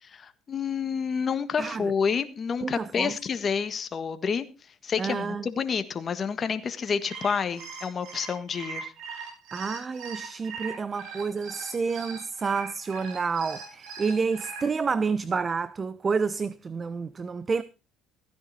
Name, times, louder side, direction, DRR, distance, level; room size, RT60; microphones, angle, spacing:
voice 1, 0.0-4.5 4.8-8.9, left 6 dB, 40° left, 1.6 m, -29 dB
voice 2, 1.6-1.9 2.6-3.1 5.0-5.5 9.5-17.6, right 5 dB, 30° right, 0.7 m, -29 dB
sound 1, 6.9-14.6, right 5 dB, 65° right, 5.5 m, -40 dB
15.5 x 10.0 x 4.3 m
supercardioid pair, 85°, 0 cm